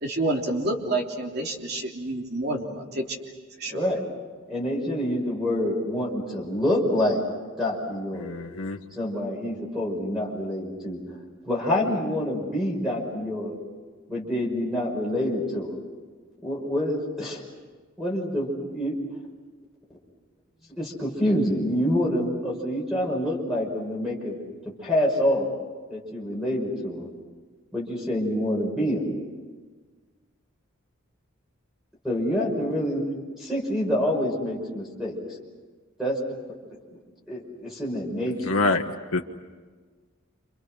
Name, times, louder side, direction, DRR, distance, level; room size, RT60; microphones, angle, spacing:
voice 1, 0.0-3.2 3.6-3.9, right 2 dB, 50° right, 0 dB, 3.4 m, -29 dB
voice 2, 3.7-4.0 4.5-7.2 7.6-8.3 9.0-11.0 11.5-13.6 14.1-15.8 16.4-17.4 18.0-19.0 20.8-24.4 24.8-25.5 25.9-27.1 27.7-29.1 32.0-33.0 33.4-35.2 36.0-36.2 37.3-38.6, left 1 dB, ahead, -2 dB, 5.8 m, -26 dB
voice 3, 8.1-8.8 38.4-39.2, left 3 dB, 85° left, 2 dB, 1.3 m, -26 dB
29.5 x 27.5 x 6.4 m, 1.4 s
head